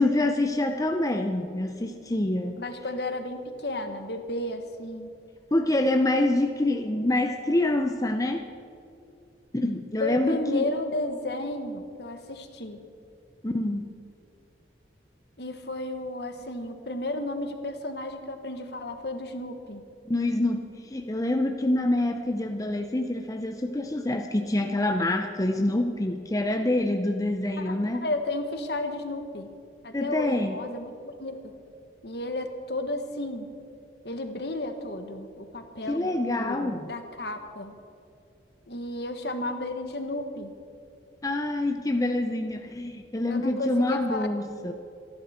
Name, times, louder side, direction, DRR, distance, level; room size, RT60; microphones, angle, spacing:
voice 1, 0.0-2.6 5.5-8.5 9.5-10.7 13.4-13.9 20.1-28.1 29.9-30.6 35.9-36.9 41.2-44.7, left 1 dB, 20° left, 5 dB, 0.6 m, -26 dB
voice 2, 2.6-5.1 10.0-12.8 15.4-19.8 27.6-27.7 28.0-29.5 29.8-31.5 32.0-33.5 34.0-37.7 38.7-40.5 43.3-44.3, left 2 dB, 60° left, 6 dB, 1.4 m, -33 dB
27.0 x 11.0 x 4.4 m, 2.6 s
head